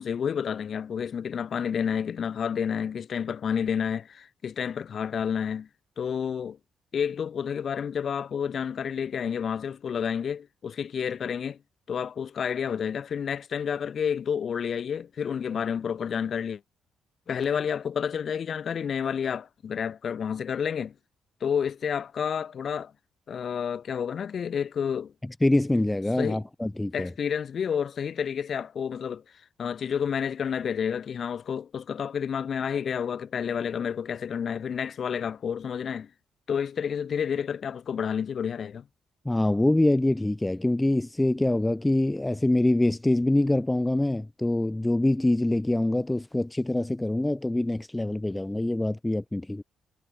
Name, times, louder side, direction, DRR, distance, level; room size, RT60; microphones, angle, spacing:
voice 1, 0.0-5.7 6.0-6.6 6.9-11.6 11.9-16.6 17.3-20.9 21.4-22.9 23.3-25.1 26.2-26.4 26.9-29.2 29.6-36.1 36.5-38.8, left 7 dB, 55° left, 4.0 m, -30 dB
voice 2, 25.4-27.1 39.3-49.6, left 1 dB, 10° left, 0.6 m, -25 dB
cardioid pair, 90°, 0 cm